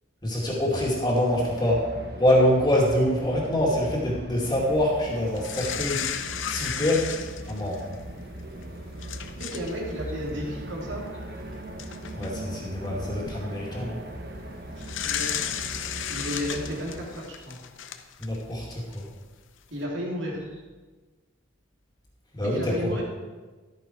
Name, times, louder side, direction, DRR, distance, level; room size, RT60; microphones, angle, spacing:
voice 1, 0.2-1.9 2.2-6.0 6.5-7.1 7.5-7.8 12.1-14.0 18.2-19.1 22.3-22.7, left 1 dB, 20° left, -3 dB, 2.4 m, -25 dB
sound 1, 1.3-17.1, right 1 dB, 50° right, 1.2 m, -39 dB
sound 2, 5.4-8.0 8.6-8.7 9.0-9.7 10.0-10.2 11.3-11.4 11.8-12.3 13.0-13.3 14.8-18.5 18.9-19.0, left 9 dB, 70° left, 0.7 m, -33 dB
voice 2, 9.4-11.0 14.8-15.7 16.0-17.6 19.7-20.4 22.4-23.0, equal, 65° right, -3 dB, 3.1 m, -33 dB
13.0 x 9.2 x 4.6 m, 1.3 s
head